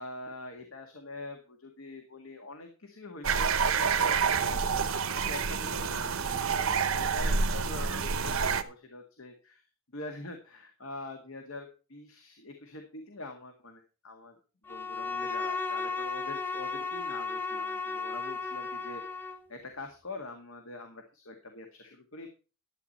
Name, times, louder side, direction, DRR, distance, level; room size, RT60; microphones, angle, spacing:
voice 1, 0.0-4.8 5.2-9.6 9.9-14.4 14.6-22.3, left 2 dB, 75° left, 5 dB, 1.9 m, -44 dB
sound 1, 3.2-8.6, right 5 dB, 80° right, 1.0 m, -28 dB
Bowed string instrument, 14.7-19.5, left 4 dB, 10° left, 1.1 m, -34 dB
12.5 x 8.9 x 4.2 m, 0.34 s
head